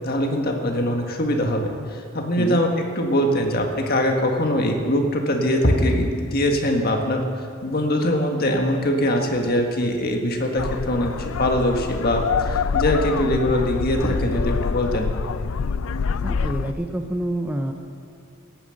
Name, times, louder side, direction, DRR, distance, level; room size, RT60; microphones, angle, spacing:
voice 1, 0.0-2.7 3.0-7.3 7.6-15.1, left 1 dB, 45° left, 2 dB, 1.6 m, -22 dB
sound 1, 10.6-16.7, left 5 dB, 70° left, 0.4 m, -26 dB
voice 2, 16.2-17.7, right 1 dB, 5° right, 3 dB, 0.6 m, -27 dB
16.5 x 9.5 x 6.5 m, 2.4 s
head